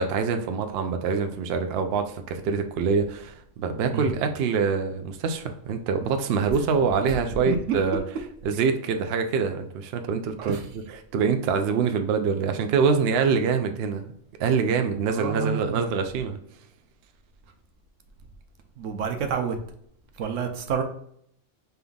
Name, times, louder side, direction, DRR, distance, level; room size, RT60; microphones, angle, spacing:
voice 1, 0.0-8.0 8.4-10.6 10.9-14.1 14.4-16.4, right 5 dB, 60° right, 0.7 m, -25 dB
voice 2, 15.1-15.9 18.8-19.6 20.2-20.8, right 6 dB, 80° right, 1.0 m, -29 dB
5.4 x 3.4 x 2.3 m
omnidirectional pair, 1.3 m